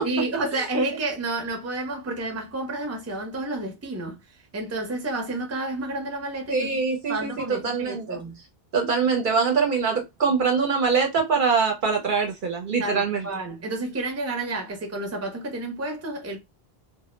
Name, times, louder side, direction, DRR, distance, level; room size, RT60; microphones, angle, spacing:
voice 1, 0.0-4.2 4.5-6.7 7.1-8.4 12.8-16.4, right 2 dB, 20° right, 0.5 m, -30 dB
voice 2, 6.5-8.2 8.7-13.2, right 5 dB, 60° right, 0.7 m, -23 dB
2.1 x 2.0 x 3.0 m
omnidirectional pair, 1.1 m